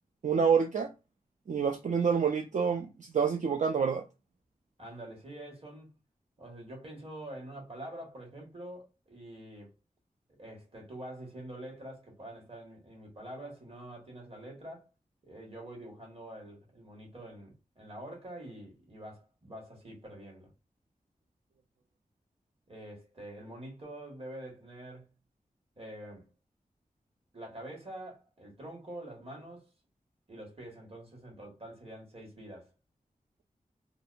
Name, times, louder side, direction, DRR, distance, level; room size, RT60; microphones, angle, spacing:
voice 1, 0.2-0.9 1.5-4.0, right 6 dB, 60° right, 0.4 m, -27 dB
voice 2, 4.8-6.0 6.4-9.7 10.4-14.9 15.2-20.5 22.7-25.1 25.8-26.3 27.3-29.7 30.3-32.7, right 1 dB, 45° right, 1.3 m, -46 dB
2.6 x 2.2 x 2.5 m
cardioid pair, 50°, 14 cm